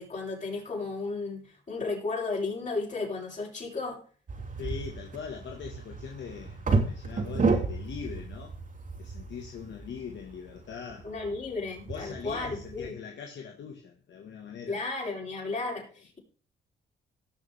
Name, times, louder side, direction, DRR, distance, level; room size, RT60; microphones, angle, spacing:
voice 1, 0.0-4.0 11.0-12.9 14.7-16.2, left 3 dB, 40° left, 7.6 m, -34 dB
sound 1, 4.3-12.9, right 3 dB, 40° right, 3.6 m, -32 dB
voice 2, 4.6-8.6 9.0-11.1 11.8-14.8, left 7 dB, 65° left, 1.9 m, -41 dB
18.0 x 7.3 x 3.6 m
cardioid pair, 90°, 20 cm